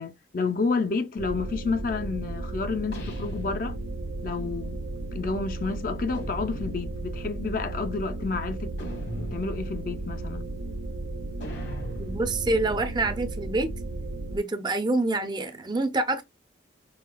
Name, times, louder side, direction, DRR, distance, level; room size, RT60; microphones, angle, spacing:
voice 1, 0.0-3.8 4.2-4.8 5.1-8.7 9.2-10.5, left 4 dB, 50° left, 0.4 m, -30 dB
sound 1, 1.2-14.4, right 2 dB, 85° right, 0.4 m, -34 dB
sound 2, 2.9-4.2 6.1-7.2 8.8-9.8 11.4-14.1, equal, 65° left, 1.2 m, -41 dB
voice 2, 12.0-13.7 14.3-16.2, right 2 dB, 25° right, 0.5 m, -26 dB
5.7 x 2.3 x 2.2 m
head